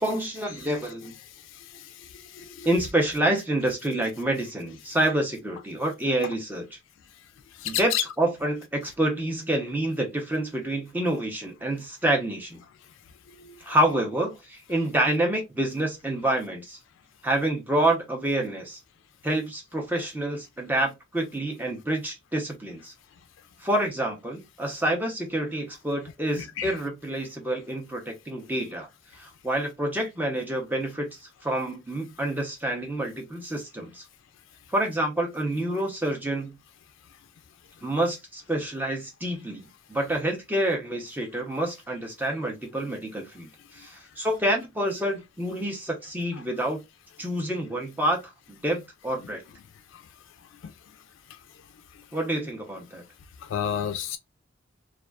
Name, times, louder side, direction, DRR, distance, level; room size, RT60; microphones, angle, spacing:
voice 1, 0.0-1.1 2.6-6.8 7.6-12.6 13.6-16.8 17.2-18.8 19.2-22.9 23.6-28.9 29.2-31.1 31.4-34.0 34.7-36.6 37.8-46.8 47.2-48.2 48.5-49.4 52.1-53.0, right 1 dB, 10° right, 0.6 m, -28 dB
voice 2, 2.3-2.7 7.6-8.0 13.4-13.5 26.4-26.7 53.5-54.2, left 10 dB, 75° left, 0.3 m, -29 dB
2.4 x 2.3 x 2.2 m
head